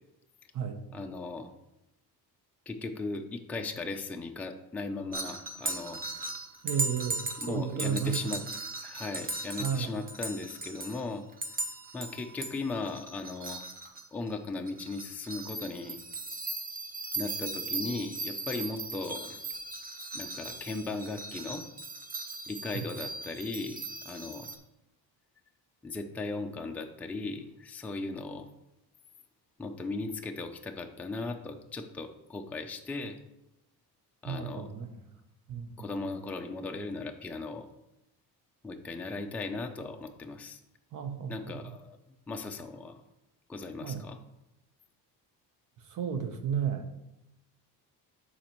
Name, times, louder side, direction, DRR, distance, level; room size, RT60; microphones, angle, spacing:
voice 1, 0.9-1.5 2.7-6.0 7.4-8.4 8.8-11.3 11.9-13.6 14.1-16.0 17.2-19.4 20.1-21.6 22.5-24.5 25.8-28.5 29.6-33.2 34.2-34.7 35.8-37.7 38.6-40.6 41.3-42.0 42.3-42.9 43.5-44.2, left 3 dB, 5° left, 3 dB, 0.4 m, -37 dB
sound 1, 5.1-11.0 11.3-14.3 14.7-24.6, right 2 dB, 20° right, 0.8 m, -38 dB
voice 2, 6.6-8.4 9.6-9.9 34.2-34.9 35.5-35.9 40.9-41.3 43.8-44.0 45.9-46.9, right 7 dB, 50° right, 8 dB, 1.0 m, -33 dB
12.5 x 4.2 x 3.0 m, 0.90 s
cardioid pair, 135°, 40 cm